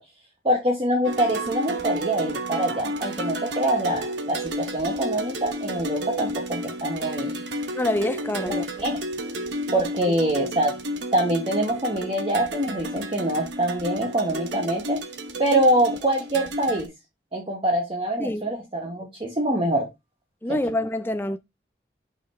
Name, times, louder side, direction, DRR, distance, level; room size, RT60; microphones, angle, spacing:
voice 1, 0.4-7.3 8.4-9.0 9.7-10.7 11.1-15.0 15.4-16.9 17.3-19.9 20.5-20.6, right 1 dB, 30° right, 1.6 m, -24 dB
sound 1, 1.0-16.9, right 1 dB, 85° right, 1.2 m, -32 dB
voice 2, 7.7-8.7 10.1-10.2 18.2-18.4 20.4-21.4, left 1 dB, 10° left, 0.5 m, -26 dB
5.8 x 5.3 x 4.7 m
head